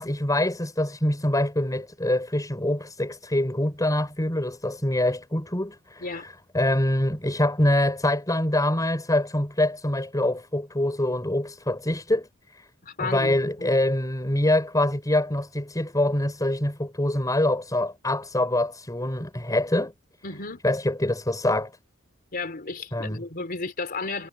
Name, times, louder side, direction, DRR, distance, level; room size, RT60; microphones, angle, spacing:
voice 1, 0.0-12.7 13.0-19.9 20.6-21.7 22.9-23.2, left 1 dB, 15° left, 6.0 m, -25 dB
voice 2, 12.8-13.7 20.2-20.6 22.3-24.3, left 3 dB, 45° left, 4.1 m, -33 dB
head